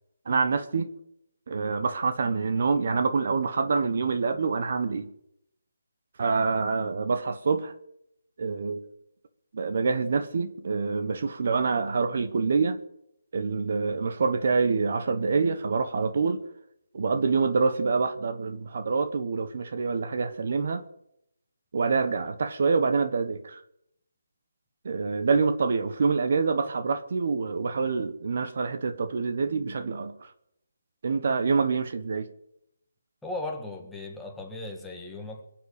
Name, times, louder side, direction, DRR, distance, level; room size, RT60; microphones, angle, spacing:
voice 1, 0.3-0.9 1.5-5.1 6.2-7.7 8.4-8.8 9.5-12.8 13.3-16.4 16.9-20.8 21.7-23.6 24.8-30.3 31.0-32.3, right 4 dB, 50° right, 1.2 m, -26 dB
voice 2, 33.2-35.4, left 2 dB, 5° left, 1.6 m, -37 dB
22.0 x 7.6 x 8.7 m
hypercardioid pair, 165°, 0 cm